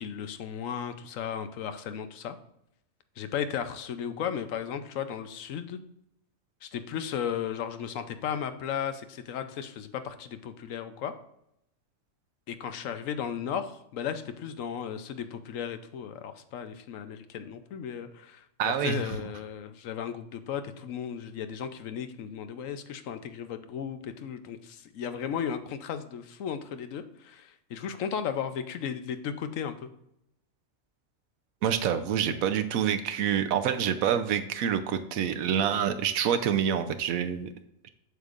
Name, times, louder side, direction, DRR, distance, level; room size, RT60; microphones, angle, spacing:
voice 1, 0.0-2.4 3.2-5.8 6.6-11.1 12.5-29.9, left 8 dB, 75° left, 10 dB, 1.0 m, -35 dB
voice 2, 18.6-19.1 31.6-37.5, right 8 dB, 90° right, 8 dB, 1.1 m, -27 dB
8.0 x 6.7 x 2.5 m, 0.79 s
omnidirectional pair, 1.4 m